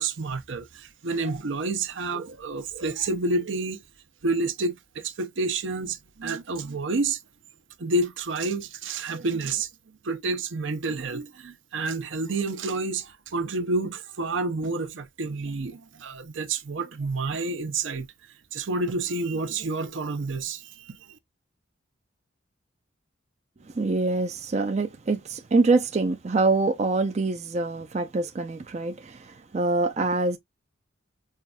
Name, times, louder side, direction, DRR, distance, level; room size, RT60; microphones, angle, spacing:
voice 1, 0.0-3.8 4.2-7.2 7.8-9.7 10.0-18.1 18.5-20.9, right 3 dB, 75° right, 0.6 m, -29 dB
voice 2, 23.7-30.4, right 3 dB, 35° right, 0.4 m, -25 dB
5.5 x 2.4 x 2.2 m
head